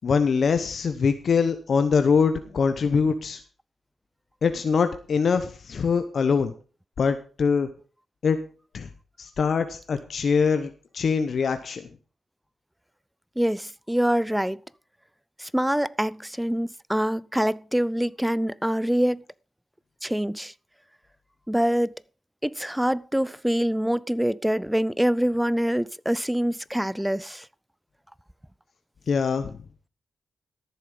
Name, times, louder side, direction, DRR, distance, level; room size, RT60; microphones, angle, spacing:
voice 1, 0.0-3.4 4.4-6.5 7.0-7.7 8.2-8.4 8.7-8.9 9.2-11.8 29.1-29.6, left 5 dB, 60° left, 0.9 m, -23 dB
voice 2, 13.4-14.6 15.4-19.2 20.0-20.5 21.5-21.9 22.4-27.5, equal, 5° right, 0.5 m, -25 dB
13.5 x 7.5 x 5.4 m
cardioid pair, 70°, 0 cm